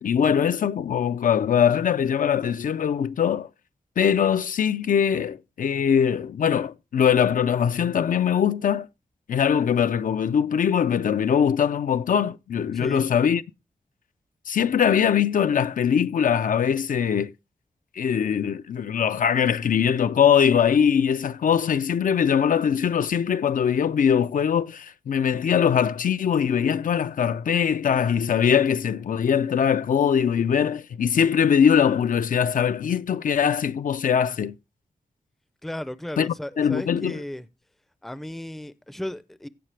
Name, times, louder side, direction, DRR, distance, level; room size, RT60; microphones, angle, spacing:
voice 1, 0.0-3.5 4.0-8.9 9.3-13.4 14.5-17.3 18.0-34.6 36.2-37.2, left 8 dB, 65° left, 0.5 m, -22 dB
voice 2, 12.7-13.1 35.6-37.5 38.0-39.5, left 1 dB, ahead, 0.5 m, -35 dB
16.5 x 5.7 x 3.2 m
wide cardioid pair, 155°, 15 cm